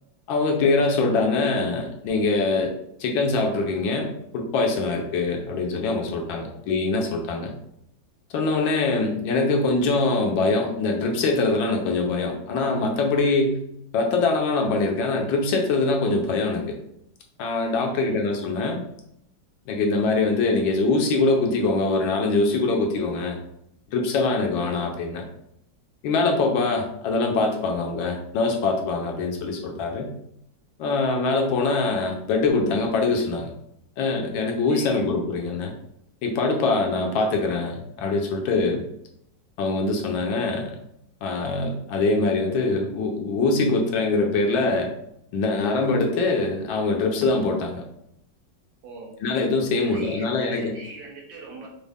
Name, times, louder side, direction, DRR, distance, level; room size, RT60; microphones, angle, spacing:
voice 1, 0.3-2.7 3.0-7.5 8.3-13.6 13.9-16.7 17.4-18.8 19.7-23.4 23.9-25.2 26.0-30.1 30.8-33.5 34.0-35.7 36.2-38.8 39.6-40.7 41.2-44.9 45.3-47.8 49.2-50.8, left 3 dB, 80° left, 2 dB, 1.5 m, -23 dB
voice 2, 17.7-18.2 34.7-35.0 48.8-49.1 49.7-51.7, right 3 dB, 85° right, -2 dB, 1.7 m, -42 dB
5.0 x 2.1 x 3.5 m, 0.77 s
omnidirectional pair, 2.0 m